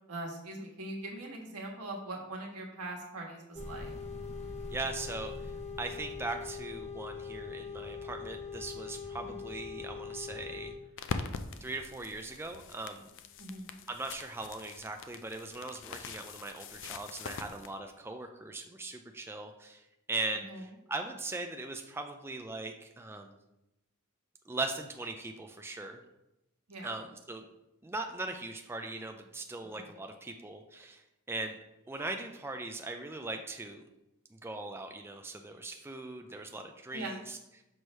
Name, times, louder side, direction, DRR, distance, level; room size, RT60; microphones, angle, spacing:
voice 1, 0.1-3.9 9.2-9.4 13.4-13.8 20.5-20.6 26.7-26.9 29.7-29.8 36.9-37.2, right 2 dB, 85° right, 0 dB, 1.4 m, -41 dB
sound 1, 3.5-10.7, left 5 dB, 30° left, 0.9 m, -42 dB
voice 2, 4.7-5.5 5.8-10.7 11.6-13.1 13.9-23.3 24.5-26.0 26.8-27.5 27.8-31.0 31.3-31.6 31.9-33.8 34.3-37.6, right 2 dB, 10° right, 4 dB, 0.3 m, -40 dB
sound 2, 11.0-17.7, left 5 dB, 55° left, 0.4 m, -43 dB
6.2 x 3.2 x 5.4 m, 0.90 s
head